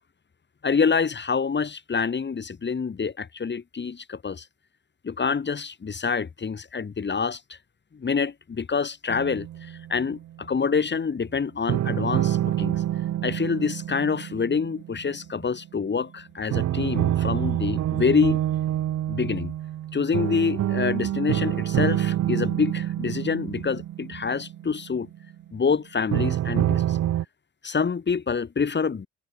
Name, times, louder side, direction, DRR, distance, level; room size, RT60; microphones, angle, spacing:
voice 1, 0.6-4.5 5.0-7.6 7.9-12.8 13.2-18.4 19.1-19.5 19.9-25.1 25.5-27.0 27.6-29.1, left 5 dB, 35° left, 3.4 m, -26 dB
sound 1, 9.1-10.3 11.7-15.7 16.5-25.3 26.1-27.3, right 12 dB, 60° right, 0.8 m, -27 dB
cardioid pair, 90°, 30 cm